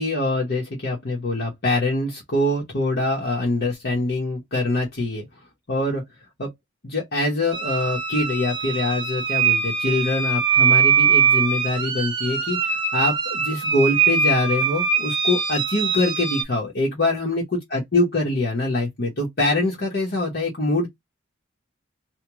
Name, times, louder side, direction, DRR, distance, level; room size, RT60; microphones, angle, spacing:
voice 1, 0.0-5.2 5.7-6.0 6.4-6.5 6.8-17.4 17.7-20.9, left 2 dB, 50° left, 0.9 m, -24 dB
sound 1, 7.5-16.4, right 6 dB, 25° right, 0.5 m, -22 dB
3.0 x 2.3 x 3.4 m
head